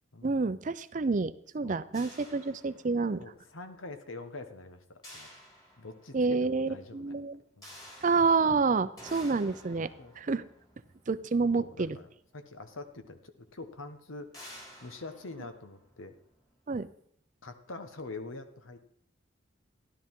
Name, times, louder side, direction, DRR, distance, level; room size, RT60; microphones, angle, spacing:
voice 1, 0.2-3.2 6.1-7.4 8.0-9.9 10.2-10.4 11.1-12.0 16.7-16.9, right 4 dB, 40° right, 14 dB, 0.5 m, -28 dB
sound 1, 1.9-3.3 5.0-6.3 7.6-12.1 13.0-13.1 13.5-13.6 14.3-16.3, equal, 20° left, 3.7 m, -52 dB
voice 2, 3.2-5.3 5.8-7.2 7.6-7.8 8.8-8.9 10.0-10.1 11.6-14.3 14.8-16.1 17.4-18.8, left 3 dB, 85° left, 8 dB, 1.2 m, -45 dB
13.0 x 11.5 x 3.7 m, 0.64 s
head